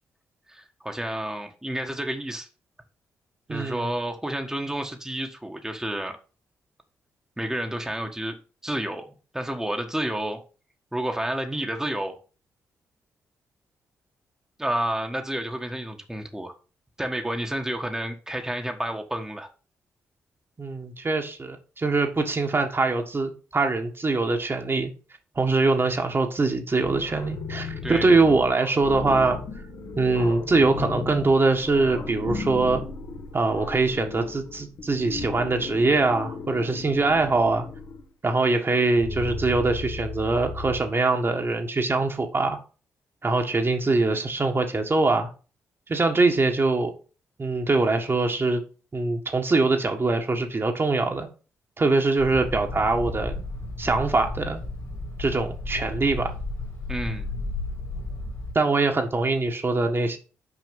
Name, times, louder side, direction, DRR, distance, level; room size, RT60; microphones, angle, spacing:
voice 1, 0.5-2.5 3.5-6.1 7.4-8.3 8.6-10.4 10.9-12.2 14.6-16.5 17.0-19.5 27.8-28.1 56.9-57.3, right 1 dB, 10° right, 1.4 m, -30 dB
voice 2, 3.5-3.9 20.6-24.9 25.3-29.4 30.0-32.8 33.3-37.7 38.2-42.6 43.2-45.3 45.9-46.9 47.4-48.6 48.9-51.3 51.8-53.3 53.8-54.6 55.2-56.3 58.5-60.2, right 3 dB, 35° right, 1.6 m, -23 dB
sound 1, 26.8-38.0 38.7-40.8, left 4 dB, 60° left, 1.5 m, -35 dB
sound 2, 52.2-58.5, left 2 dB, 75° left, 2.9 m, -33 dB
6.3 x 4.9 x 5.3 m
hypercardioid pair, 45°, 7 cm